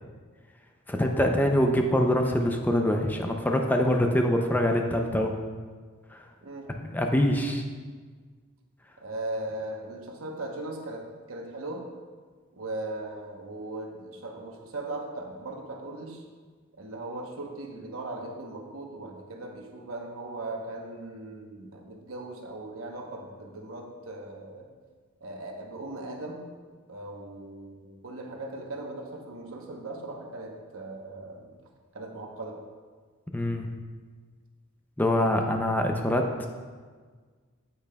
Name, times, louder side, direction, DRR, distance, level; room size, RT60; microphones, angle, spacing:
voice 1, 0.9-5.3 6.8-7.6 33.3-33.7 35.0-36.5, left 1 dB, 10° left, 3 dB, 0.5 m, -24 dB
voice 2, 9.0-11.0 11.3-11.8 12.5-16.2 16.8-24.7 25.2-26.5 26.9-31.5 31.9-32.6, right 2 dB, 70° right, 1 dB, 1.0 m, -38 dB
8.5 x 8.1 x 2.3 m, 1.5 s
head